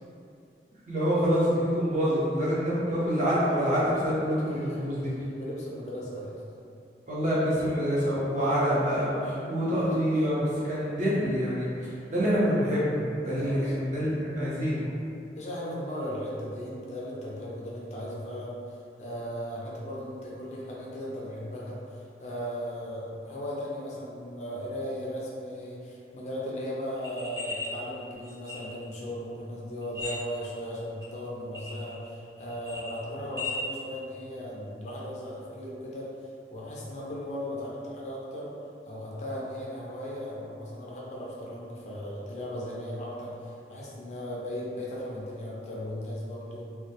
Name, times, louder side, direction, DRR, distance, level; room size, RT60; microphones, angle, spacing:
voice 1, 0.9-5.1 7.1-14.9, equal, 40° right, -9 dB, 0.6 m, -26 dB
voice 2, 4.5-4.8 5.4-6.4 9.7-10.0 13.2-13.8 15.4-36.1 36.5-38.5 38.9-46.6, equal, 40° left, -5 dB, 0.4 m, -37 dB
sound 1, 27.0-27.7 28.2-28.9 29.8-30.6 31.0-31.1 31.5-32.1 32.4-33.6, left 3 dB, 20° right, 0.9 m, -36 dB
2.2 x 2.1 x 2.8 m, 2.5 s
head